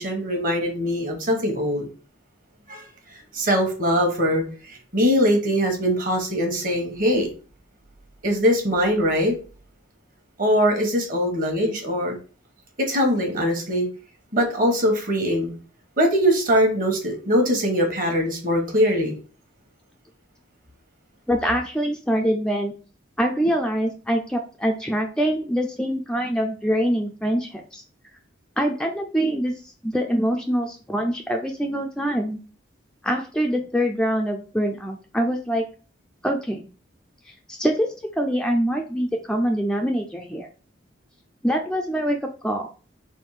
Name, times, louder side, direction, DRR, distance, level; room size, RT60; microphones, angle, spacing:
voice 1, 0.0-1.9 2.7-2.8 3.3-7.3 8.2-9.3 10.4-12.1 12.9-13.9 14.3-15.5 16.0-19.1, equal, 45° right, 3 dB, 1.2 m, -22 dB
voice 2, 21.3-22.7 23.2-27.8 28.6-32.4 33.0-35.6 36.2-36.7 37.5-40.5 41.4-42.7, equal, 5° left, 2 dB, 0.4 m, -24 dB
3.5 x 3.1 x 4.8 m, 0.38 s
head